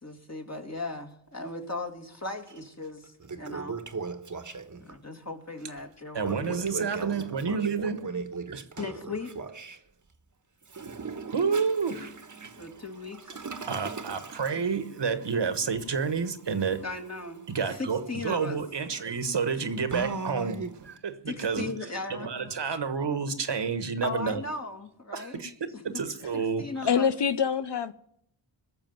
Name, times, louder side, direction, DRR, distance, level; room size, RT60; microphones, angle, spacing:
voice 1, 0.0-3.8 4.8-7.1 8.8-9.3 12.6-13.4 16.8-18.6 21.3-22.3 24.0-25.4 25.7-26.0 26.3-27.1, left 2 dB, 35° left, 3 dB, 2.5 m, -37 dB
Toilet flush, 2.5-2.6 3.0-4.9 6.2-9.8 10.6-21.0, right 4 dB, 40° right, 1.3 m, -40 dB
voice 2, 6.1-8.1 8.5-8.6 11.3-12.1 13.7-16.8 17.5-24.4 25.1-26.9, right 5 dB, 60° right, 11 dB, 1.4 m, -30 dB
voice 3, 26.8-27.9, left 7 dB, 60° left, 12 dB, 0.7 m, -25 dB
18.5 x 6.9 x 9.3 m, 0.71 s
cardioid pair, 45°, 46 cm